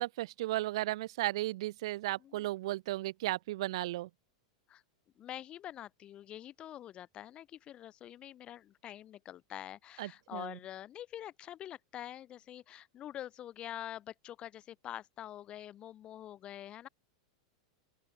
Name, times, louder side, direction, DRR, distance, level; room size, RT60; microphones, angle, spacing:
voice 1, 0.0-4.1 10.0-10.6, right 17 dB, 65° right, 1.5 m, -35 dB
voice 2, 5.2-16.9, left 11 dB, 35° left, 4.6 m, -46 dB
open air
hypercardioid pair, 110°, 3 cm